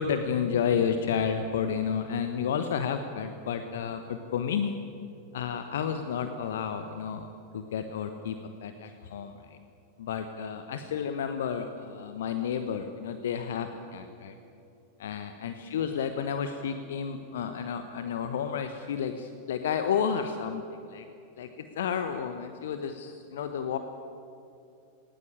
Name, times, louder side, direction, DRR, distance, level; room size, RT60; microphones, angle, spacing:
voice 1, 0.0-4.7 5.3-7.3 7.5-8.4 8.6-9.6 10.0-14.3 15.0-20.6 20.9-21.0 21.4-23.8, left 7 dB, 60° left, 8 dB, 1.1 m, -31 dB
19.5 x 18.0 x 8.9 m, 2.6 s
figure-of-eight pair, 90°, 0 cm